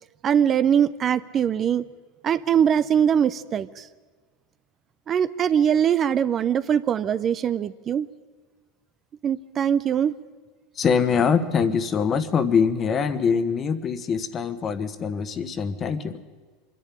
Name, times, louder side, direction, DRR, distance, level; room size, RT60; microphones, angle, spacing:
voice 1, 0.2-1.9 2.2-3.9 5.1-8.1 9.2-10.1, right 8 dB, 35° right, 14 dB, 0.6 m, -22 dB
voice 2, 10.8-16.2, left 6 dB, 35° left, 11 dB, 1.3 m, -23 dB
25.0 x 10.5 x 10.0 m, 1.4 s
supercardioid pair, 105°, 0 cm